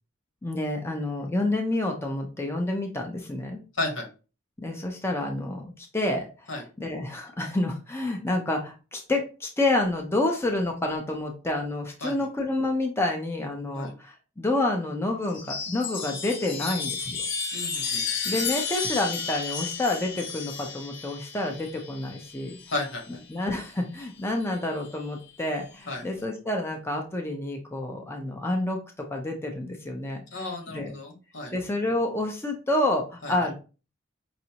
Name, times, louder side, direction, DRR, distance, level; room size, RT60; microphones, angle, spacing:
voice 1, 0.4-3.6 4.6-6.3 6.8-17.3 18.2-22.6 23.3-28.8 29.1-30.4 30.7-30.9 31.5-33.5, left 2 dB, 15° left, 2 dB, 0.6 m, -28 dB
Chime, 15.2-23.1 24.3-24.9, left 5 dB, 65° left, 0.8 m, -33 dB
voice 2, 17.5-18.1 22.7-23.2 25.9-26.0 30.3-31.5 33.2-33.3, left 2 dB, 80° left, 2 dB, 1.3 m, -33 dB
5.2 x 2.6 x 2.9 m, 0.33 s
head